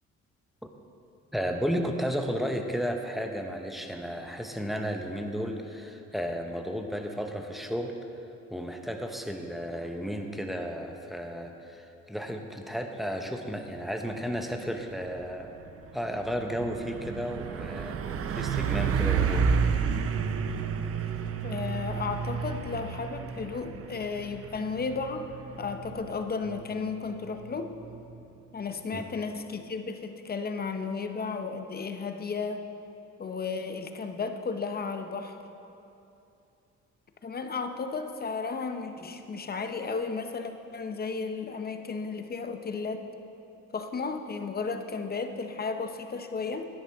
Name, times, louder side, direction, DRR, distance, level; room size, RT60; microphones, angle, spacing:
voice 1, 1.3-7.9 8.5-15.5 15.9-19.5 28.9-29.0 39.0-39.1, equal, ahead, 4 dB, 0.9 m, -33 dB
Truck, 15.1-15.3 15.7-28.2, right 6 dB, 50° right, 0.6 m, -31 dB
voice 2, 21.4-25.3 25.6-27.7 28.5-32.7 33.2-35.4 37.2-43.0 43.7-46.7, left 4 dB, 30° left, 7 dB, 0.7 m, -34 dB
11.5 x 10.0 x 3.5 m, 2.8 s
cardioid pair, 90°, 30 cm